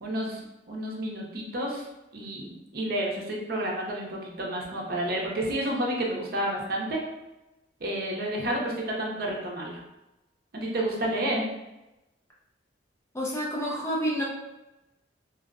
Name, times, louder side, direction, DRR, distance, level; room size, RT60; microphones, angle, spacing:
voice 1, 0.0-1.9 2.1-7.0 7.8-9.8 10.5-11.5, right 1 dB, 55° right, -2 dB, 0.5 m, -30 dB
voice 2, 13.1-14.2, equal, 15° left, -5 dB, 0.4 m, -29 dB
2.5 x 2.0 x 2.4 m, 0.96 s
head